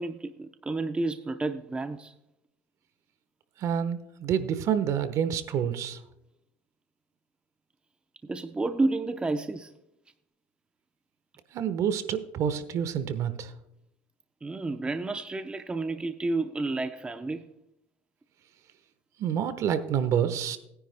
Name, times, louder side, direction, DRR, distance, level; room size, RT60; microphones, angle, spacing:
voice 1, 0.0-2.1 8.2-9.7 14.4-17.4, right 2 dB, 15° right, 0.7 m, -30 dB
voice 2, 3.6-6.0 11.5-13.5 19.2-20.6, right 8 dB, 55° right, 1.2 m, -28 dB
20.0 x 10.0 x 2.2 m
hypercardioid pair, 85°, 6 cm